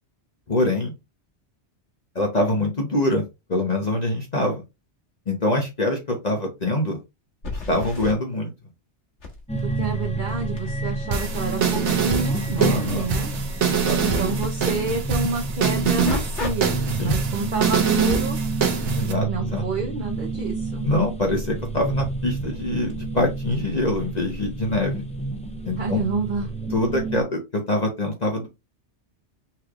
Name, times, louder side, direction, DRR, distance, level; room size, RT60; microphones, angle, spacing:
voice 1, 0.5-0.9 2.1-3.2 3.5-4.6 5.3-7.0 7.7-8.5 12.6-13.1 13.7-14.3 17.0-17.2 18.9-19.6 20.8-25.0 25.6-26.0 26.7-28.5, left 1 dB, 40° left, 0 dB, 1.1 m, -24 dB
sound 1, 6.0-6.1 7.4-8.1 9.2-14.5 15.8-16.5 17.0-17.2 21.9-22.0 22.9-23.0, left 3 dB, 75° left, 1.9 m, -36 dB
sound 2, 9.5-27.2, right 3 dB, 10° left, 0.5 m, -29 dB
voice 2, 9.6-13.3 14.0-18.4 19.2-20.9 25.8-26.5, right 3 dB, 45° right, 1 dB, 1.0 m, -29 dB
sound 3, 11.1-19.1, right 6 dB, 75° right, 1.2 m, -25 dB
5.9 x 3.2 x 2.4 m, 0.23 s
omnidirectional pair, 1.2 m